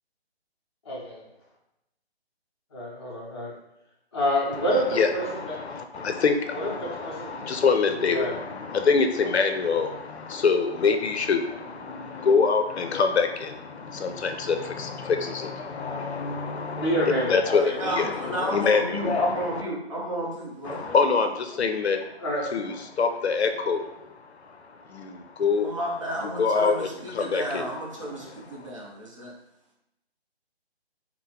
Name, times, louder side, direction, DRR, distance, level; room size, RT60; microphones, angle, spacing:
voice 1, 0.8-1.3 2.7-3.5 4.1-5.6 6.5-7.3 8.1-8.4 16.7-17.4 22.2-22.6, equal, 25° left, -5 dB, 0.6 m, -28 dB
voice 2, 4.7-19.6 20.6-22.2 22.5-25.7 26.4-27.7 28.2-28.7, left 5 dB, 85° left, 6 dB, 0.5 m, -26 dB
voice 3, 17.5-20.9 25.6-29.3, right 1 dB, 30° right, -4 dB, 0.6 m, -32 dB
3.8 x 2.0 x 2.8 m, 0.86 s
figure-of-eight pair, 155°, 32 cm